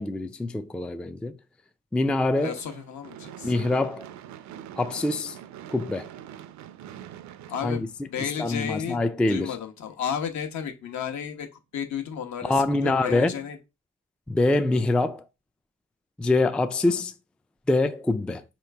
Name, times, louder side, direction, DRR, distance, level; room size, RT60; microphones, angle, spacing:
voice 1, 0.0-1.3 1.9-2.6 3.4-4.1 4.8-5.4 5.7-6.1 7.6-8.1 8.4-9.6 12.4-13.4 14.3-15.2 16.2-17.1 17.7-18.4, left 2 dB, 5° left, 0.3 m, -25 dB
voice 2, 2.4-3.5 7.5-9.0 9.3-11.5 11.7-13.6 16.9-17.0, left 8 dB, 65° left, 1.1 m, -33 dB
Gunshot gunfire / Fireworks, 2.4-8.6, right 10 dB, 65° right, 0.5 m, -44 dB
4.9 x 3.0 x 3.3 m
cardioid pair, 90°, 30 cm